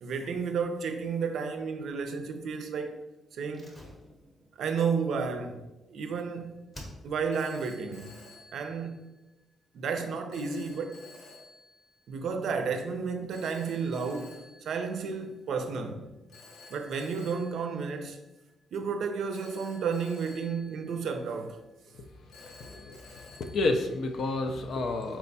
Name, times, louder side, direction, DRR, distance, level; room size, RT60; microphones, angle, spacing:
voice 1, 0.0-3.0 3.3-3.7 4.6-5.6 5.9-6.6 7.0-8.1 8.5-8.9 9.7-11.0 12.1-16.1 16.7-18.2 18.7-21.6, right 5 dB, 65° right, 0.5 m, -32 dB
Slam, 3.5-6.3 6.7-7.5 7.7-7.8, equal, 15° left, 0.7 m, -49 dB
Telephone, 6.0-6.4 7.3-9.3 10.3-12.0 13.3-15.5 16.3-18.6 19.3-21.6 22.3-24.5, left 3 dB, 85° left, 0.8 m, -53 dB
voice 2, 22.4-25.2, left 2 dB, 60° left, 0.4 m, -31 dB
4.3 x 2.2 x 4.0 m
cardioid pair, 135°, 0 cm